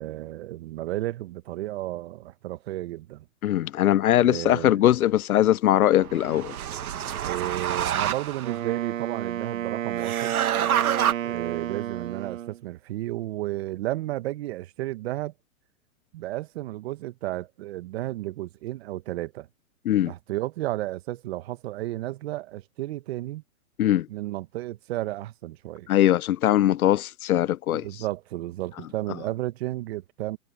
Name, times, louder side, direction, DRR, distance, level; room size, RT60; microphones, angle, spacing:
voice 1, 0.0-3.3 4.2-4.8 7.2-10.4 11.2-15.3 16.1-19.5 20.1-23.4 24.1-25.9 27.7-30.4, right 16 dB, 45° right, 1.4 m, -33 dB
voice 2, 3.4-6.6 19.8-20.1 23.8-24.1 25.9-27.9, left 12 dB, 85° left, 0.7 m, -21 dB
sound 1, 6.0-8.6 10.0-11.1, right 10 dB, 85° right, 1.3 m, -27 dB
Wind instrument woodwind instrument, 8.4-12.6, right 11 dB, 65° right, 2.8 m, -31 dB
hypercardioid pair, 145°, 42 cm